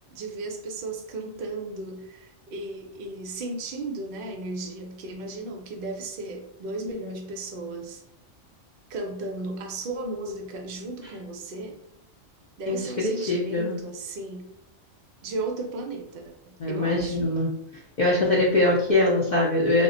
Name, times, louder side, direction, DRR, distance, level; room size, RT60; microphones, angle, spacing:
voice 1, 0.1-8.0 8.9-11.8 12.6-14.5 15.2-17.2, right 2 dB, 60° right, 2 dB, 0.6 m, -35 dB
voice 2, 12.7-13.8 16.6-17.5 18.0-19.8, left 2 dB, 65° left, -3 dB, 0.4 m, -23 dB
2.2 x 2.1 x 3.6 m, 0.78 s
omnidirectional pair, 1.4 m